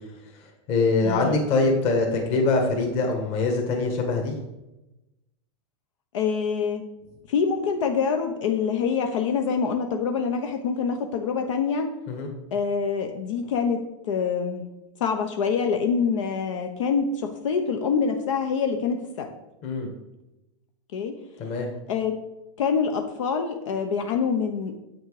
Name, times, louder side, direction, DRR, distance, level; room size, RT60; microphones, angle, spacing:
voice 1, 0.3-4.3 12.1-12.3 19.6-19.9 21.4-21.7, left 3 dB, 40° left, 2 dB, 1.7 m, -24 dB
voice 2, 1.0-1.4 6.1-6.8 7.3-11.9 12.5-14.7 15.0-19.3 20.9-21.1 21.9-22.1 22.6-24.7, left 6 dB, 85° left, 5 dB, 1.0 m, -25 dB
7.9 x 6.4 x 4.9 m, 0.95 s
supercardioid pair, 150°, 16 cm